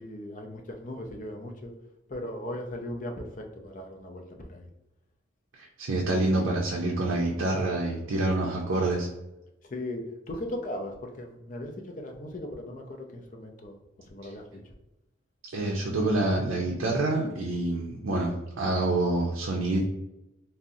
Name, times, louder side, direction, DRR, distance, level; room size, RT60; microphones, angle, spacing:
voice 1, 0.0-1.7 2.1-4.7 9.7-13.7 14.1-14.4, left 1 dB, 40° left, 3 dB, 0.4 m, -38 dB
voice 2, 5.5-9.1 14.2-14.3 15.5-19.8, right 2 dB, 75° right, -2 dB, 0.5 m, -27 dB
3.7 x 2.0 x 2.6 m, 0.96 s
head